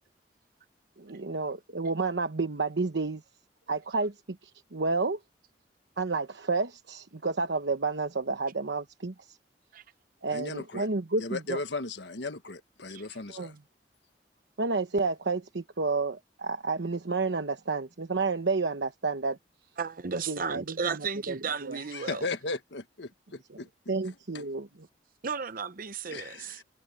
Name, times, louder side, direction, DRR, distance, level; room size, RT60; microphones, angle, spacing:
voice 1, 1.0-3.2 3.7-4.1 4.4-5.2 6.0-9.4 10.2-11.6 13.3-13.5 14.6-19.4 20.3-21.0 21.3-21.8 23.5-23.6 23.9-24.7, right 3 dB, 85° right, 1.1 m, -30 dB
voice 2, 10.3-10.9 11.2-13.5 21.9-23.7 24.3-24.4 26.1-26.6, left 3 dB, 80° left, 1.4 m, -36 dB
voice 3, 19.8-22.3 25.2-26.6, right 5 dB, 55° right, 0.8 m, -34 dB
head